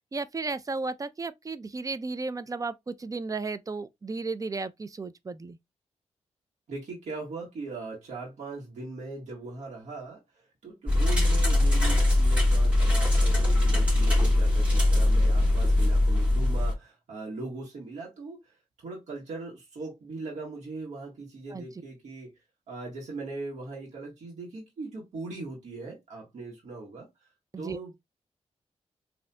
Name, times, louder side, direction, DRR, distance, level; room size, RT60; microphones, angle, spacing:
voice 1, 0.0-5.6 21.5-21.7 27.5-27.8, right 3 dB, 30° right, 0.4 m, -34 dB
voice 2, 6.7-22.3 22.7-27.1 27.6-28.0, right 3 dB, 90° right, 1.5 m, -40 dB
sound 1, 10.9-16.7, left 1 dB, 10° right, 2.0 m, -22 dB
4.1 x 2.7 x 2.2 m
cardioid pair, 70°, 12 cm